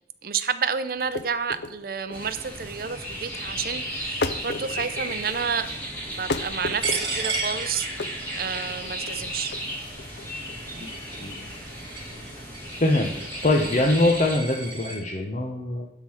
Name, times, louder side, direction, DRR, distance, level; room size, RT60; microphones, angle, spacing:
voice 1, 0.2-5.7 6.2-9.5, right 6 dB, 55° right, 11 dB, 0.6 m, -30 dB
sound 1, 1.0-13.9, left 3 dB, 75° left, 0.6 m, -36 dB
sound 2, 2.1-14.4, equal, 10° left, 2.2 m, -35 dB
Coin (dropping), 6.8-15.0, right 3 dB, 25° right, 3.9 m, -35 dB
voice 2, 12.8-15.9, left 2 dB, 40° left, 0 dB, 0.9 m, -23 dB
11.5 x 3.9 x 6.3 m, 0.82 s
head